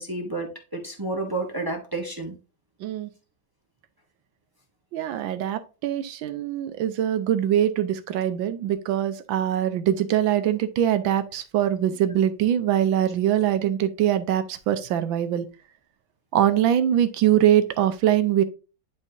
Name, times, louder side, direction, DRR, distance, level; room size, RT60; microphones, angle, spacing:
voice 1, 0.0-2.3, right 2 dB, 25° right, 0.5 m, -30 dB
voice 2, 2.8-3.1 4.9-15.5 16.3-18.4, right 11 dB, 85° right, 1.5 m, -23 dB
10.5 x 3.7 x 2.6 m
omnidirectional pair, 2.1 m